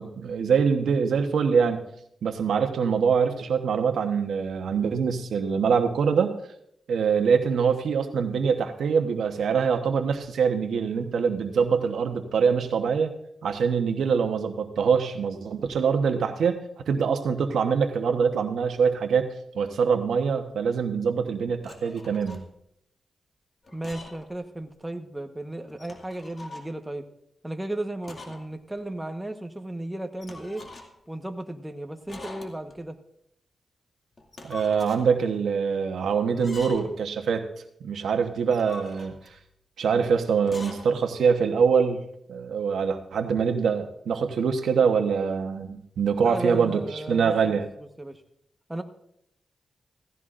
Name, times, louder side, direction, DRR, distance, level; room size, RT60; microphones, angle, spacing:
voice 1, 0.0-1.8 2.2-6.3 6.9-13.1 13.4-16.6 16.9-22.5 34.4-37.4 37.8-39.2 39.8-42.0 42.3-47.7, right 6 dB, 90° right, 6 dB, 1.1 m, -24 dB
sound 1, 21.6-22.5 23.6-24.3 24.6-24.7 25.7-26.7 28.0-28.5 28.8-28.9 30.2-31.1 32.1-32.8 34.2-35.1 36.3-37.0 38.4-39.4 40.4-40.9, left 2 dB, 45° left, 2.3 m, -43 dB
voice 2, 23.7-27.0 27.4-30.7 31.1-33.0 46.2-47.6 48.0-48.2 48.7-48.8, right 1 dB, 10° right, 5 dB, 1.2 m, -34 dB
16.5 x 15.5 x 2.6 m, 0.73 s
cardioid pair, 75°, 0 cm